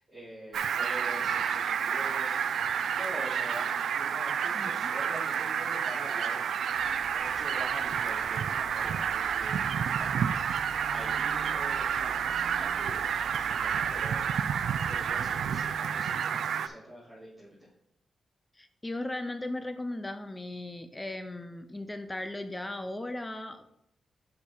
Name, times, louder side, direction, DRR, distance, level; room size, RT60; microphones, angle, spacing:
voice 1, 0.0-6.4 7.1-14.3 14.8-17.7, equal, 20° right, -12 dB, 3.0 m, -45 dB
Fowl, 0.5-16.7, right 7 dB, 75° right, 0.4 m, -30 dB
voice 2, 4.5-4.9 18.6-23.7, left 1 dB, 15° left, 9 dB, 0.5 m, -37 dB
sound 1, 6.7-15.6, right 2 dB, 60° left, 1.6 m, -50 dB
7.1 x 5.2 x 4.5 m, 0.77 s
wide cardioid pair, 135°, 0 cm